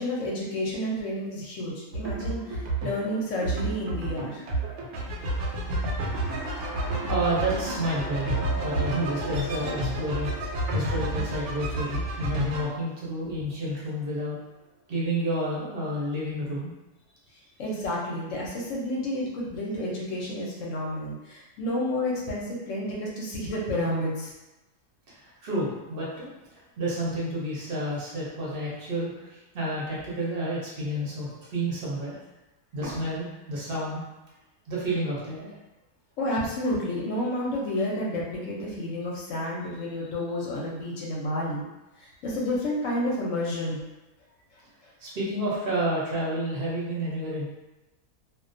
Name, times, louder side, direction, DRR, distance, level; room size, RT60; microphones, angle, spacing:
voice 1, 0.0-4.4 17.3-24.3 36.2-41.7 42.0-43.8 44.8-44.9, left 1 dB, 65° left, -4 dB, 0.8 m, -30 dB
sound 1, 1.9-12.6, right 1 dB, 85° right, 1.1 m, -30 dB
sound 2, 6.0-13.9, equal, 20° left, 0.3 m, -40 dB
voice 2, 7.1-8.3 8.6-14.4 14.9-16.7 25.1-26.3 26.5-32.2 32.7-34.0 34.7-35.5 45.0-47.4, right 1 dB, 55° right, -6 dB, 0.7 m, -30 dB
2.3 x 2.1 x 2.5 m, 1.0 s
omnidirectional pair, 1.6 m